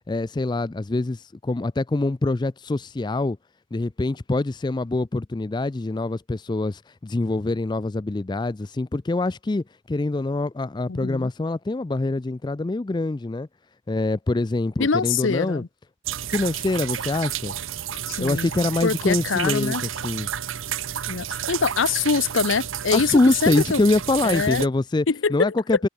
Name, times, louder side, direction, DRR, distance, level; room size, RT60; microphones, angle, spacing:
voice 1, 0.1-3.4 3.7-13.5 13.9-15.6 16.3-17.5 18.2-19.7 20.0-20.3 22.9-25.1 25.3-25.9, left 2 dB, 20° left, 0.4 m, -24 dB
voice 2, 10.9-11.3 14.8-15.7 18.1-18.5 18.8-19.8 21.1-23.8 24.2-24.6 25.1-25.5, left 5 dB, 70° left, 0.7 m, -24 dB
sound 1, 16.0-24.7, right 10 dB, 75° right, 0.8 m, -31 dB
head